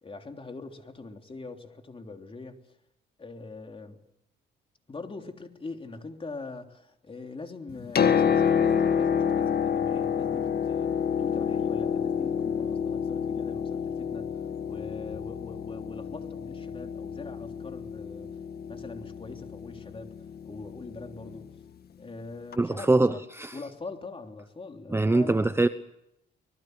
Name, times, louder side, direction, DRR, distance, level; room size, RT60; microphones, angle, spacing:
voice 1, 0.0-2.6 3.2-4.0 4.9-14.3 14.7-18.3 18.7-20.1 20.4-21.5 22.0-23.2 23.5-25.4, left 3 dB, 25° left, 4 dB, 3.4 m, -42 dB
Piano, 7.7-21.4 22.5-22.6, left 7 dB, 50° left, 1.8 m, -28 dB
voice 2, 22.6-23.6 24.9-25.7, right 2 dB, 10° right, 11 dB, 0.9 m, -23 dB
24.5 x 21.5 x 8.1 m, 0.82 s
cardioid pair, 90°, 20 cm